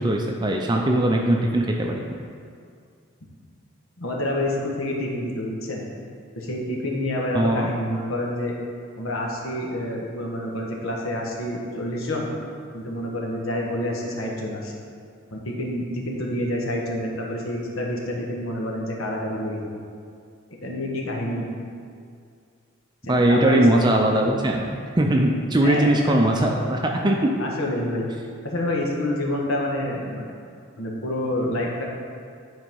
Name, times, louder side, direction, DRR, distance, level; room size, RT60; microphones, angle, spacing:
voice 1, 0.0-2.2 7.3-7.7 23.1-27.3, right 1 dB, 20° right, 1 dB, 0.5 m, -20 dB
voice 2, 4.0-5.8 6.4-8.5 9.0-12.3 12.7-14.7 15.3-19.6 20.6-21.5 23.0-23.6 24.2-24.3 25.6-26.2 27.4-28.1 28.4-30.2 30.8-31.8, left 1 dB, 85° left, -2 dB, 1.4 m, -28 dB
10.5 x 4.1 x 5.3 m, 2.2 s
head